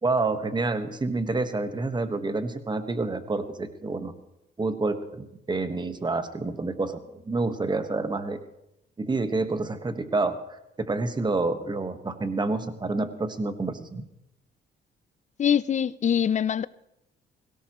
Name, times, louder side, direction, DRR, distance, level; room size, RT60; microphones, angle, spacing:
voice 1, 0.0-4.1 4.6-8.4 9.0-14.0, right 3 dB, 20° right, 1.3 m, -28 dB
voice 2, 15.4-16.7, left 8 dB, 35° left, 0.5 m, -23 dB
17.5 x 17.0 x 3.0 m
cardioid pair, 90°, 20 cm